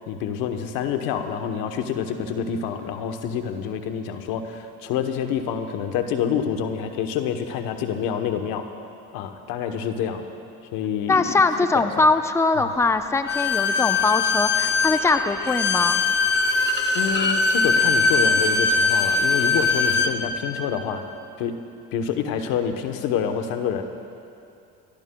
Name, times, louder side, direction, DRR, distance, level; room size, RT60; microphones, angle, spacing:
voice 1, 0.0-8.7 9.1-10.3 10.7-11.3 11.6-12.1 12.6-12.7 16.9-21.1 21.4-21.6 21.9-23.8, left 8 dB, 85° left, 6 dB, 1.0 m, -27 dB
voice 2, 11.1-16.0, left 3 dB, 10° left, 8 dB, 0.6 m, -21 dB
Bowed string instrument, 13.3-20.1, left 4 dB, 30° left, 1.1 m, -21 dB
23.5 x 17.5 x 2.3 m, 2.6 s
supercardioid pair, 85°, 34 cm